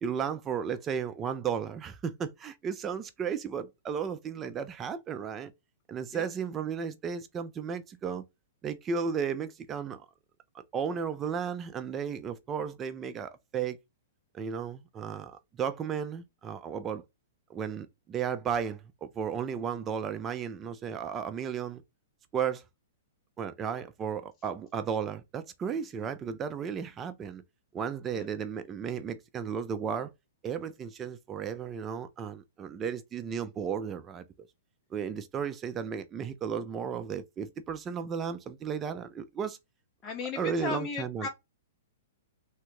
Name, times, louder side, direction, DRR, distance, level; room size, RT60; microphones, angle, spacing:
voice 1, 0.0-5.5 5.9-8.2 8.6-10.1 10.7-13.8 14.3-17.0 17.5-21.8 22.3-22.6 23.4-27.4 27.7-30.1 30.4-34.3 34.9-39.6 40.4-41.3, right 7 dB, 20° right, 0.3 m, -34 dB
voice 2, 40.0-41.3, left 4 dB, 20° left, 0.7 m, -35 dB
3.5 x 2.2 x 2.9 m
hypercardioid pair, 155°, 0 cm